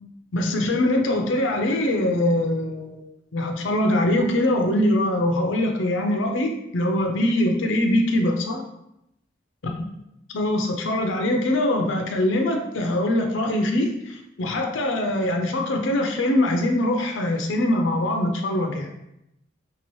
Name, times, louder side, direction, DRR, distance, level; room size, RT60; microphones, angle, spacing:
voice 1, 0.3-3.1 3.3-8.6 10.3-18.9, left 1 dB, 70° left, 3 dB, 0.5 m, -23 dB
3.0 x 2.9 x 3.0 m, 0.82 s
head